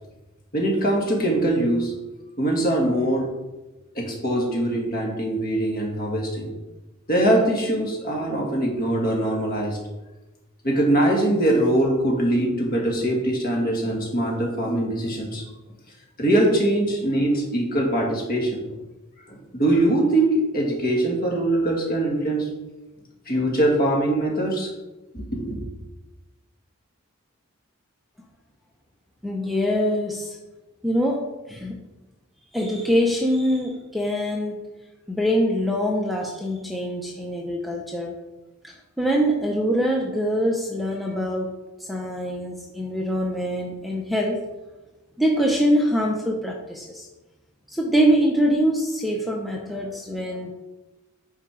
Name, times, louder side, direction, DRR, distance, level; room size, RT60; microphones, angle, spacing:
voice 1, 0.5-1.9 2.4-3.3 4.0-6.5 7.1-9.8 10.6-15.4 16.2-18.8 19.3-22.5 23.3-24.7 25.1-25.6, right 1 dB, 45° left, 0 dB, 2.0 m, -22 dB
voice 2, 29.2-30.4 30.8-31.9 32.5-34.7 35.1-38.2 38.6-44.5 45.2-47.1 47.7-50.5, equal, ahead, -1 dB, 0.7 m, -24 dB
8.7 x 5.0 x 4.9 m, 1.1 s
head